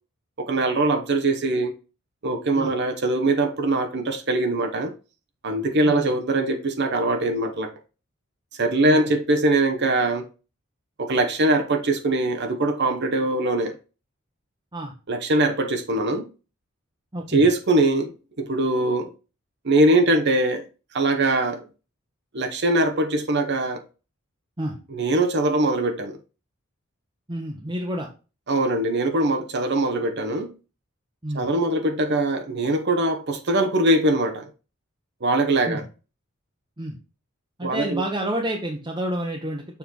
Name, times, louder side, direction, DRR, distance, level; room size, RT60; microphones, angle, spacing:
voice 1, 0.4-1.7 2.2-4.9 5.4-7.7 8.6-10.3 11.0-13.7 15.1-16.3 17.3-18.1 18.4-19.1 19.6-20.6 20.9-21.6 22.3-23.8 24.9-26.2 28.5-30.5 31.3-34.5 35.2-35.8 37.6-38.0, right 2 dB, 55° right, 1.0 m, -22 dB
voice 2, 17.1-17.5 24.6-24.8 27.3-28.1 31.2-31.5 35.7-35.8 36.8-37.0 37.6-39.8, right 1 dB, 20° right, 1.0 m, -29 dB
7.0 x 4.4 x 3.9 m
head